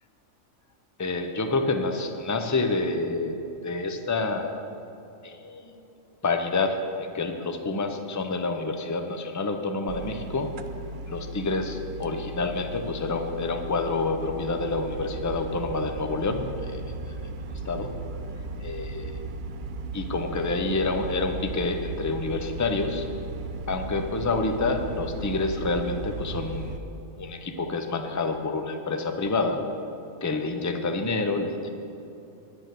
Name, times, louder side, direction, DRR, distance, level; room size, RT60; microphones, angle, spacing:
voice 1, 1.0-3.4 3.6-4.6 5.2-5.8 6.2-10.5 11.1-17.9 18.6-19.2 19.9-23.1 23.7-26.8 27.2-29.6 30.2-31.7, left 3 dB, 20° left, 5 dB, 0.6 m, -28 dB
sound 1, 9.9-26.8, right 2 dB, 75° right, 0.4 m, -36 dB
9.9 x 9.4 x 7.7 m, 2.8 s
omnidirectional pair, 1.4 m